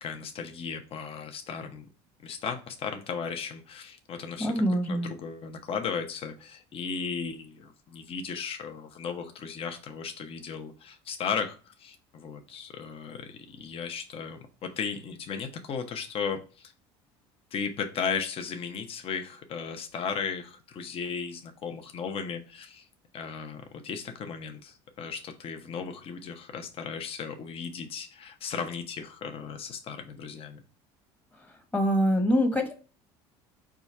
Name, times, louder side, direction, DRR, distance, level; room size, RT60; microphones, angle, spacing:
voice 1, 0.0-1.9 2.2-16.7 17.5-22.9 23.1-30.6, left 6 dB, 45° left, 5 dB, 0.9 m, -36 dB
voice 2, 4.4-5.1 31.7-32.7, equal, 10° left, 4 dB, 1.2 m, -24 dB
4.9 x 2.4 x 4.2 m, 0.35 s
supercardioid pair, 100°, 14 cm